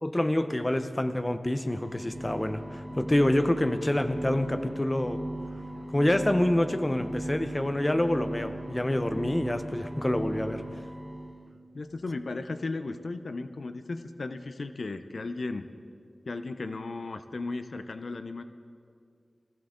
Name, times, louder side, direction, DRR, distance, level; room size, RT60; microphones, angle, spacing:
voice 1, 0.0-5.2 5.9-10.6, left 1 dB, 20° left, 9 dB, 0.8 m, -27 dB
sound 1, 1.8-11.4, right 1 dB, 15° right, 0.9 m, -38 dB
voice 2, 11.7-15.7 16.3-18.4, left 3 dB, 65° left, 9 dB, 0.6 m, -35 dB
22.5 x 15.5 x 3.8 m, 2.3 s
wide cardioid pair, 90°, 0 cm